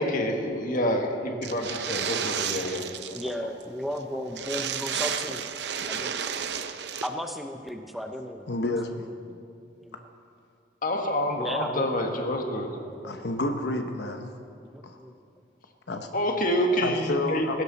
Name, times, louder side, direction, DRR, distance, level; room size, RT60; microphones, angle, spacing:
voice 1, 0.0-2.8 10.8-12.7 16.1-17.6, left 1 dB, 50° left, 3 dB, 1.7 m, -27 dB
sound 1, 1.4-3.3 3.6-3.7 4.0-4.1 4.3-7.1, right 8 dB, 65° right, 0.7 m, -32 dB
voice 2, 3.1-5.5 5.9-6.2 7.0-8.5 9.8-10.1 11.4-11.9 13.0-13.3 14.7-15.1, equal, ahead, 4 dB, 0.7 m, -35 dB
voice 3, 8.5-9.4 13.0-14.3 14.8-15.0 15.9-16.1 16.8-17.6, left 2 dB, 65° left, 5 dB, 1.0 m, -30 dB
19.0 x 16.0 x 4.2 m, 2.4 s
head